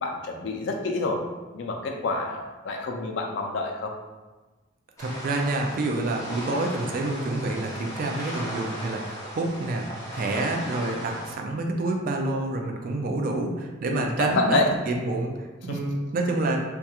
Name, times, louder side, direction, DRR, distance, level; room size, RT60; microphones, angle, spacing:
voice 1, 0.0-1.2 1.5-3.9 13.8-14.6 15.7-15.8, left 3 dB, 70° left, 2 dB, 0.4 m, -28 dB
sound 1, 5.0-11.3, equal, 15° left, 0.5 m, -37 dB
voice 2, 5.0-9.9 10.1-16.6, right 2 dB, 50° right, 2 dB, 0.3 m, -28 dB
2.3 x 2.2 x 2.8 m, 1.2 s
head